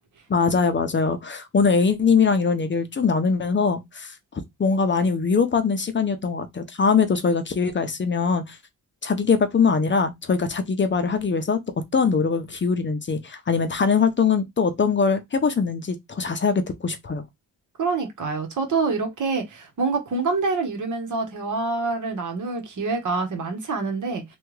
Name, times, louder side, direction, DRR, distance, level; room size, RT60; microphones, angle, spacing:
voice 1, 0.3-4.1 4.6-8.6 9.0-11.6 11.9-17.2, left 5 dB, 35° left, 0.5 m, -22 dB
voice 2, 17.8-24.2, right 4 dB, 65° right, 1.2 m, -26 dB
3.4 x 2.3 x 3.1 m
wide cardioid pair, 135°, 33 cm